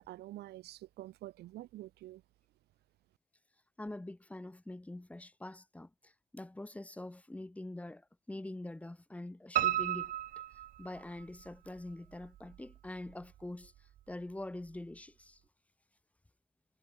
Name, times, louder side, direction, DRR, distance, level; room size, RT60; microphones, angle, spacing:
voice 1, 0.0-2.2, right 16 dB, 75° right, 2.7 m, -47 dB
voice 2, 3.8-10.1 10.8-15.4, left 1 dB, 10° left, 1.5 m, -45 dB
Piano, 9.6-11.5 11.9-12.8 13.1-13.2 13.6-13.7 14.0-14.1, right 12 dB, 55° right, 0.6 m, -34 dB
cardioid pair, 110°, 17 cm